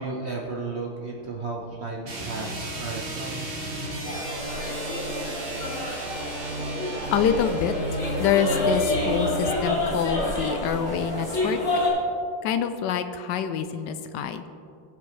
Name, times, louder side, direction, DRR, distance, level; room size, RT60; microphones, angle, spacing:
voice 1, 0.0-3.5, right 3 dB, 50° right, -1 dB, 0.8 m, -34 dB
sound 1, 2.0-9.6, right 1 dB, 35° right, 1.1 m, -33 dB
sound 2, 4.0-11.9, left 2 dB, 35° left, 3.2 m, -28 dB
voice 2, 7.1-7.7 8.2-11.6 12.4-14.4, left 8 dB, 80° left, 9 dB, 0.9 m, -26 dB
19.5 x 7.5 x 3.2 m, 2.6 s
omnidirectional pair, 2.4 m